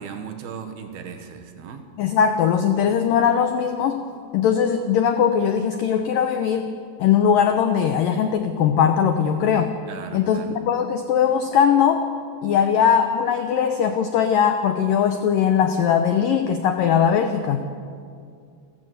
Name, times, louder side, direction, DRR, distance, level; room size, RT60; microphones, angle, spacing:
voice 1, 0.0-1.9 9.8-10.6, right 7 dB, 65° right, 6 dB, 3.1 m, -37 dB
voice 2, 2.0-4.0 4.3-6.7 7.0-9.7 10.1-12.1 12.4-17.7, left 8 dB, 85° left, 7 dB, 1.9 m, -20 dB
29.0 x 15.0 x 7.9 m, 2.3 s
omnidirectional pair, 5.2 m